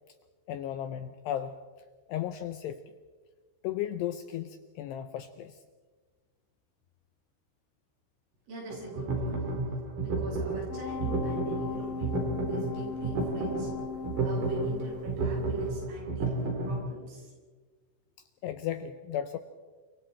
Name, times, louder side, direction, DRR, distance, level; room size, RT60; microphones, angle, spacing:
voice 1, 0.5-1.5 2.1-2.8 3.6-5.6 18.4-19.4, left 11 dB, 80° left, 10 dB, 2.5 m, -35 dB
voice 2, 8.5-9.4 10.0-12.2 12.5-13.7 14.2-17.3, right 2 dB, 80° right, -2 dB, 8.9 m, -43 dB
sound 1, 8.7-16.8, right 2 dB, 45° right, 5.3 m, -32 dB
sound 2, 10.7-15.3 15.7-15.8, left 6 dB, 30° left, 6.5 m, -38 dB
29.5 x 25.0 x 4.4 m, 1.4 s
omnidirectional pair, 5.6 m